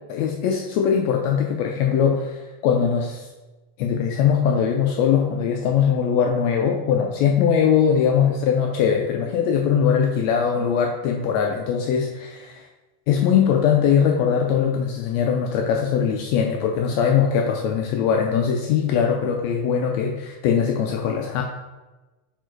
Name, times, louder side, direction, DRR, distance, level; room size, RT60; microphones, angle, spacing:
voice 1, 0.1-3.3 3.8-12.6 13.1-21.4, left 7 dB, 85° left, 2 dB, 1.5 m, -21 dB
5.2 x 4.5 x 4.5 m, 1.1 s
omnidirectional pair, 3.7 m